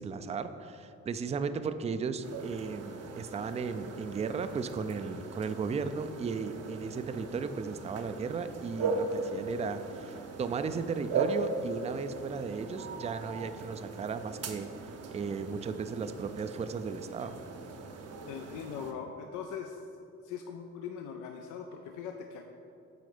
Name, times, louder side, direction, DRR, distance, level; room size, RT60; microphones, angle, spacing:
voice 1, 0.0-14.7 15.1-17.3, right 5 dB, 25° right, 11 dB, 0.3 m, -35 dB
sound 1, 2.2-18.9, right 4 dB, 55° right, 0.7 m, -39 dB
voice 2, 18.3-19.8 20.2-22.5, left 7 dB, 85° left, 4 dB, 0.5 m, -41 dB
7.9 x 4.1 x 4.9 m, 2.7 s
cardioid pair, 90°, 30 cm